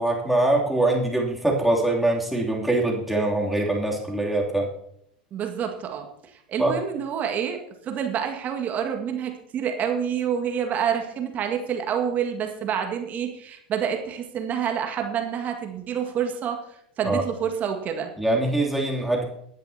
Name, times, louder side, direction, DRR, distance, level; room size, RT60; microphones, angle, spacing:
voice 1, 0.0-4.7 6.6-6.8 17.0-17.2 18.2-19.3, right 2 dB, ahead, -2 dB, 2.9 m, -23 dB
voice 2, 5.3-6.1 6.5-7.6 7.8-16.6 17.0-18.1, right 8 dB, 35° right, 4 dB, 1.9 m, -27 dB
22.5 x 10.0 x 2.8 m, 0.73 s
figure-of-eight pair, 80°, 5 cm